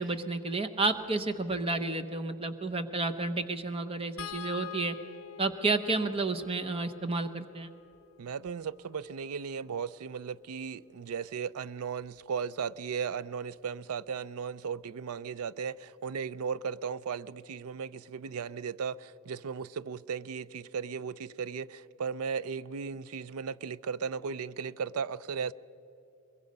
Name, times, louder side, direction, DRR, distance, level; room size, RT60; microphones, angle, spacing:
voice 1, 0.0-5.0 5.4-7.7, right 3 dB, 25° right, 0.8 m, -31 dB
sound 1, 4.2-10.5 12.0-12.2 12.6-12.7, left 9 dB, 60° left, 0.8 m, -47 dB
voice 2, 8.2-25.5, right 6 dB, 80° right, 0.4 m, -36 dB
22.5 x 22.0 x 5.3 m
head